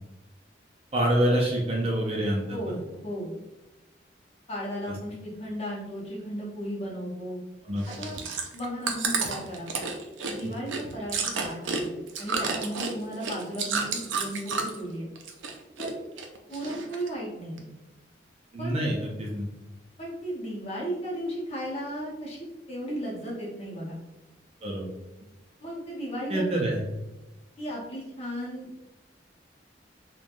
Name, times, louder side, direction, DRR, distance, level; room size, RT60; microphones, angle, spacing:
voice 1, 0.9-2.8 7.6-7.8 10.4-10.5 18.5-19.5 24.6-24.9 26.3-26.8, right 1 dB, 30° right, -2 dB, 0.5 m, -26 dB
voice 2, 2.5-3.3 4.5-7.4 8.0-8.2 8.5-9.7 10.2-15.1 15.8-15.9 16.5-17.7 18.6-18.8 20.0-22.4 22.7-24.0 25.6-26.4 27.6-28.8, equal, 35° left, -5 dB, 0.8 m, -35 dB
Chewing mastication, 7.8-14.9 15.2-15.9 16.2-17.1 17.6-17.7, right 5 dB, 90° right, 0.4 m, -31 dB
3.1 x 2.2 x 2.5 m, 1.0 s
head